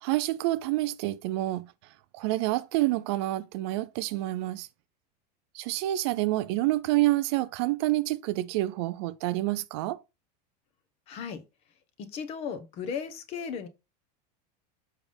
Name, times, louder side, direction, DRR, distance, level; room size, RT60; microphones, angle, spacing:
voice 1, 0.0-4.7 5.5-10.0, right 17 dB, 40° right, 0.4 m, -28 dB
voice 2, 11.1-11.4 12.0-13.7, left 6 dB, 30° left, 0.9 m, -36 dB
7.0 x 5.5 x 3.4 m
supercardioid pair, 175°, 21 cm